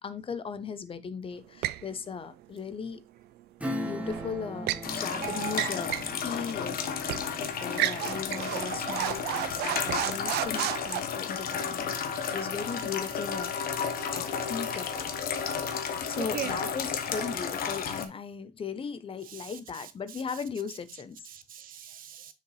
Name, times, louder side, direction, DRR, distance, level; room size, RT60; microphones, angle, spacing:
voice 1, 0.0-3.0 3.8-5.9 6.2-7.0 7.3-15.1 16.0-21.3, left 6 dB, 35° left, 0.7 m, -38 dB
sound 1, 1.6-1.9 4.1-4.9 5.5-6.1 6.5-6.6 7.1-7.3 7.7-11.0, right 15 dB, 75° right, 0.4 m, -32 dB
Acoustic guitar / Strum, 3.6-9.8 10.2-10.3, equal, 10° right, 1.2 m, -40 dB
sound 2, 4.8-18.0, left 6 dB, 60° left, 1.1 m, -33 dB
voice 2, 5.1-5.8 15.3-15.4 15.8-16.6 17.1-17.4 19.2-20.4 21.2-22.3, right 10 dB, 55° right, 1.0 m, -41 dB
6.8 x 5.1 x 3.1 m
cardioid pair, 110°, 17 cm